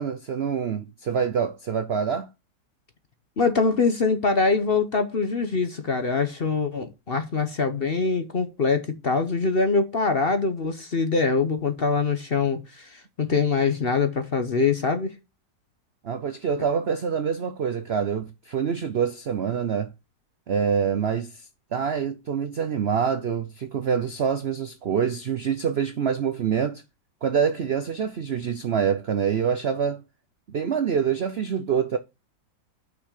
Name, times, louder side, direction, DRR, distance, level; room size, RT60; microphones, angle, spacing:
voice 1, 0.0-2.3 16.0-19.9 20.5-26.8 27.2-30.0 30.5-32.0, right 7 dB, 70° right, 0.6 m, -26 dB
voice 2, 3.4-15.1, left 4 dB, 45° left, 0.9 m, -24 dB
6.1 x 6.1 x 6.6 m
omnidirectional pair, 1.9 m